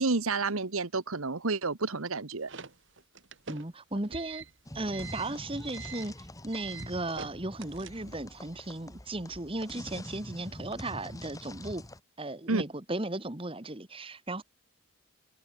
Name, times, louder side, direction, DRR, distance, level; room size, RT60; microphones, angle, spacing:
voice 1, 0.0-2.5 12.5-12.6, right 3 dB, 85° right, 1.4 m, -30 dB
sound 1, 2.1-8.3, right 6 dB, 60° right, 2.0 m, -45 dB
voice 2, 3.5-4.4 4.7-11.9 12.2-14.4, right 2 dB, 25° right, 1.5 m, -36 dB
sound 2, 4.7-12.0, left 1 dB, 15° left, 1.8 m, -45 dB
head